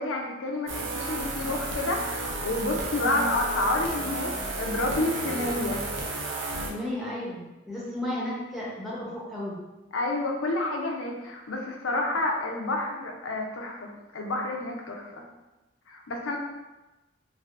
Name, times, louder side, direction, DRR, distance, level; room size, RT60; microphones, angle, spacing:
voice 1, 0.0-5.8 9.9-15.1 15.9-16.4, left 2 dB, 85° left, 1 dB, 0.5 m, -29 dB
sound 1, 0.7-6.7, right 2 dB, 80° right, 0.6 m, -33 dB
voice 2, 6.7-9.6, left 1 dB, ahead, -8 dB, 0.7 m, -34 dB
3.3 x 2.5 x 2.4 m, 1.1 s
head